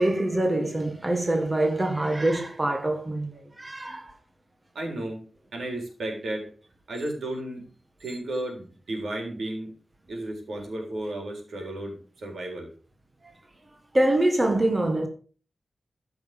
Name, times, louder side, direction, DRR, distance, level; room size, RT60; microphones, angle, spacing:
voice 1, 0.0-4.1 13.9-15.1, right 1 dB, 20° right, 1.4 m, -24 dB
voice 2, 4.7-5.2 5.5-6.5 6.9-7.6 8.0-9.7 10.1-12.7, right 1 dB, 80° right, 4.1 m, -33 dB
14.0 x 6.1 x 5.2 m
wide cardioid pair, 170°, 0 cm